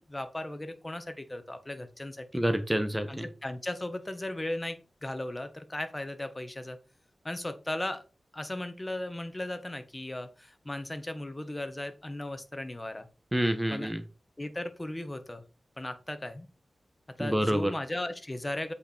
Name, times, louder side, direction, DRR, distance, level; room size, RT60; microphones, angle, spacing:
voice 1, 0.0-2.4 3.1-6.8 7.2-8.0 8.3-13.1 13.7-13.9 14.4-15.4 15.8-16.5 17.2-18.7, left 1 dB, 25° left, 10 dB, 1.6 m, -36 dB
voice 2, 2.3-3.2 13.3-14.0 17.2-17.7, equal, 10° right, 8 dB, 1.1 m, -27 dB
8.1 x 5.0 x 4.5 m, 0.33 s
cardioid pair, 50°, 0 cm